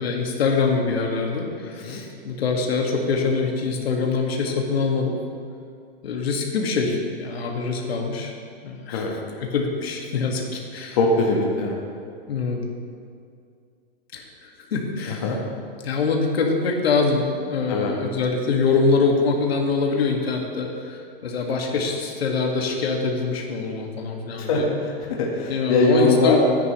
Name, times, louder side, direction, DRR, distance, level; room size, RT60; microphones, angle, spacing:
voice 1, 0.0-5.1 6.0-8.3 8.6-9.1 9.4-11.0 12.3-12.7 14.1-15.3 15.8-24.7 25.5-26.4, left 4 dB, 85° left, 1 dB, 1.8 m, -24 dB
voice 2, 10.9-11.8 15.2-15.4 17.7-17.9 24.4-24.9 25.2-26.4, left 2 dB, 35° left, -2 dB, 1.3 m, -21 dB
13.5 x 9.6 x 3.1 m, 2.3 s
hypercardioid pair, 175°, 30 cm